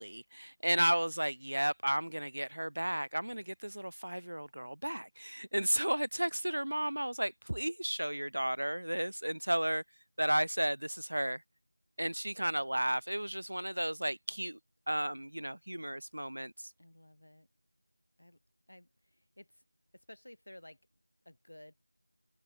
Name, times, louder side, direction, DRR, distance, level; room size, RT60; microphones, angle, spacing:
voice 1, 0.0-9.8 10.2-11.4 12.0-14.6 14.9-16.7, right 1 dB, 75° right, 0.4 m, -33 dB
voice 2, 16.8-17.5 18.2-18.4 18.7-19.6 19.9-20.8 21.2-21.7, left 1 dB, 60° left, 6.3 m, -55 dB
figure-of-eight pair, 180°, 0 cm